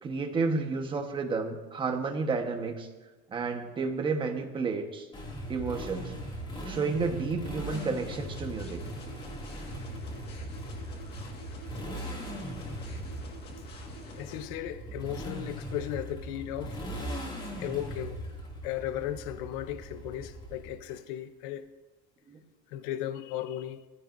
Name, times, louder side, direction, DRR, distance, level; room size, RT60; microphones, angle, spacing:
voice 1, 0.0-2.9 3.3-5.1 5.5-6.1 6.6-8.8 22.3-22.4, right 4 dB, 15° right, 1.2 m, -31 dB
Motorcycle, 5.1-20.9, right 1 dB, 15° left, 2.4 m, -39 dB
sound 1, 7.7-14.5, left 1 dB, 35° left, 1.8 m, -47 dB
voice 2, 14.1-17.0 17.6-18.2 18.6-21.7 22.7-23.8, left 12 dB, 60° left, 0.8 m, -36 dB
22.5 x 15.0 x 2.6 m
cardioid pair, 175°, 29 cm